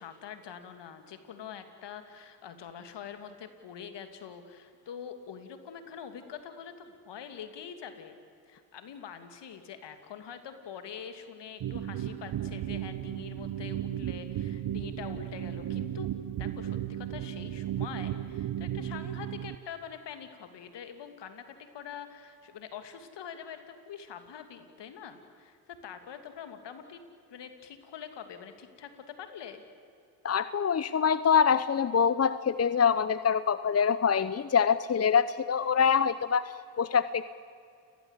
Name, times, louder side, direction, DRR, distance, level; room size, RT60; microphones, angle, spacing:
voice 1, 0.0-8.2 8.5-16.1 16.4-27.0 27.3-29.6, left 8 dB, 65° left, 8 dB, 2.8 m, -45 dB
sound 1, 11.6-19.5, right 11 dB, 60° right, 1.1 m, -35 dB
voice 2, 30.2-37.3, left 7 dB, 35° left, 14 dB, 0.9 m, -25 dB
30.0 x 19.5 x 8.3 m, 2.4 s
supercardioid pair, 55°, 45 cm